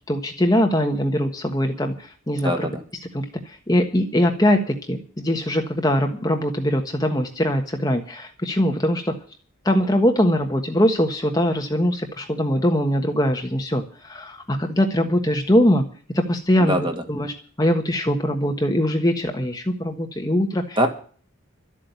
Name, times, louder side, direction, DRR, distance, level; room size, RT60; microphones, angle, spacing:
voice 1, 0.1-2.7 3.1-9.1 9.6-15.8 16.1-20.8, equal, 15° left, 3 dB, 1.3 m, -22 dB
voice 2, 2.4-2.8 16.6-17.0 20.8-20.9, equal, 20° right, 4 dB, 2.3 m, -22 dB
13.0 x 8.6 x 8.1 m, 0.42 s
head